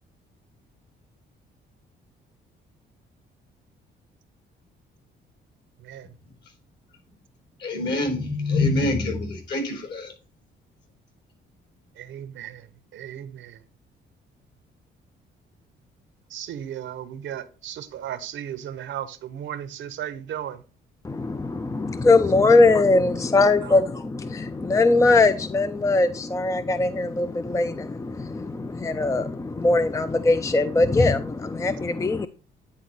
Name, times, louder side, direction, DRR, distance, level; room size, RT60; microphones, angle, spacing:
voice 1, 7.6-10.1, left 2 dB, 60° left, 3.9 m, -25 dB
voice 2, 12.0-12.7 12.9-13.6 16.3-20.6 23.2-23.8, right 10 dB, 75° right, 0.9 m, -36 dB
voice 3, 21.0-32.3, left 3 dB, 15° left, 0.4 m, -21 dB
9.7 x 4.1 x 4.0 m
cardioid pair, 90°, 20 cm